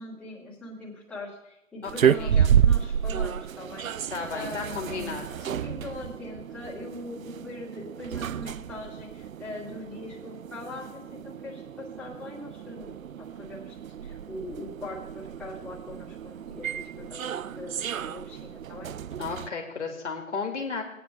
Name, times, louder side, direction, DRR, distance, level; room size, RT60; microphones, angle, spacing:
voice 1, 0.0-3.9 4.3-13.8 14.0-18.9, left 2 dB, 5° left, -9 dB, 2.6 m, -41 dB
voice 2, 1.8-2.5 4.1-5.5 19.2-20.8, left 4 dB, 60° left, 1 dB, 2.4 m, -34 dB
sound 1, 1.8-19.5, right 8 dB, 85° right, 0.5 m, -30 dB
17.5 x 9.4 x 3.4 m, 0.86 s
figure-of-eight pair, 145°, 40 cm